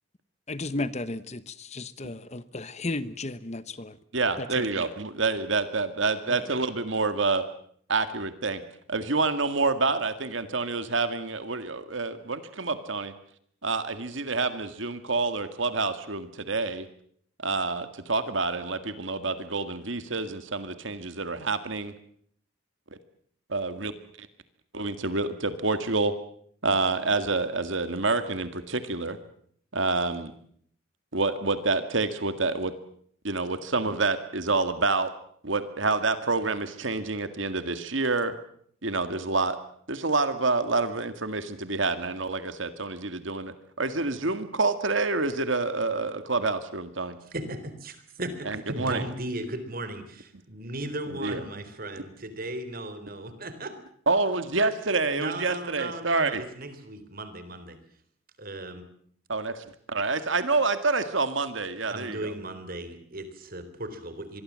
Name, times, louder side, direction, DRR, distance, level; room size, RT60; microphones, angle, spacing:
voice 1, 0.5-4.0 4.4-4.7 6.3-6.5, left 2 dB, 35° left, 1.0 m, -34 dB
voice 2, 4.1-7.4 7.9-8.6 8.9-13.1 13.6-16.9 17.4-21.9 23.5-23.9 24.2-24.3 24.7-26.1 26.6-29.2 29.7-30.3 31.1-32.7 33.2-35.1 35.4-38.3 38.8-39.6 39.9-47.2 48.5-49.0 51.1-51.4 54.1-56.4 59.3-62.3, right 3 dB, 65° right, 1.9 m, -27 dB
voice 3, 47.3-53.8 55.1-57.8 58.4-58.8 61.9-64.4, right 1 dB, 45° right, 3.9 m, -36 dB
26.0 x 22.5 x 7.6 m
head